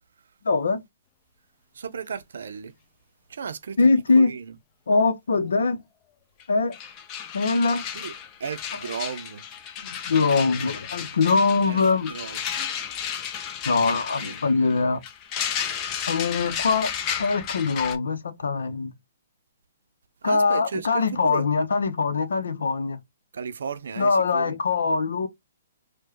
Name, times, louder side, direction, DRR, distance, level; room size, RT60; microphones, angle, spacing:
voice 1, 0.4-0.8 3.8-4.3 4.9-5.8 6.5-6.8 7.3-7.9 9.8-12.1 13.7-15.0 16.1-16.9 17.2-18.9 20.2-23.0 24.0-25.3, left 4 dB, 80° left, 0.7 m, -22 dB
voice 2, 1.7-2.7 3.3-3.8 4.2-4.5 7.9-8.1 8.4-9.4 11.6-11.8 12.1-12.5 14.2-14.3 20.2-21.5 23.3-24.6, right 6 dB, 75° right, 0.5 m, -34 dB
sound 1, 6.4-6.5 6.7-18.0, left 8 dB, 30° left, 0.5 m, -33 dB
4.6 x 2.2 x 2.9 m
hypercardioid pair, 135°, 0 cm